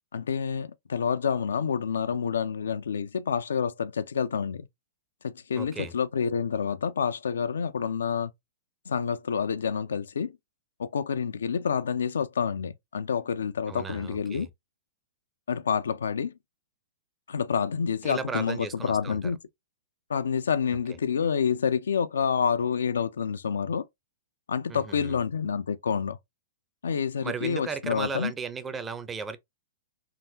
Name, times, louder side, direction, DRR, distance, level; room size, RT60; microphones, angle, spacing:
voice 1, 0.1-4.7 5.2-8.3 8.9-10.4 10.8-14.5 15.5-16.3 17.3-19.4 20.1-23.9 24.5-26.2 26.8-28.3, left 6 dB, 90° left, 0.3 m, -28 dB
voice 2, 5.5-5.9 13.7-14.5 18.0-19.3 24.7-25.2 27.2-29.4, right 5 dB, 15° right, 0.4 m, -35 dB
3.7 x 2.2 x 2.6 m
hypercardioid pair, 135°, 0 cm